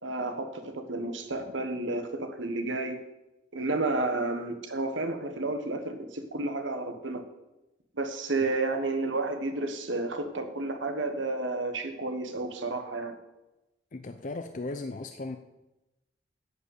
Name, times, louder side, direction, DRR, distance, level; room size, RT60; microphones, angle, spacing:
voice 1, 0.0-3.0 3.5-7.2 8.0-13.1, right 2 dB, 80° right, 7 dB, 1.3 m, -31 dB
voice 2, 13.9-15.4, left 2 dB, 40° left, 7 dB, 0.5 m, -36 dB
11.0 x 5.2 x 8.2 m, 0.99 s
head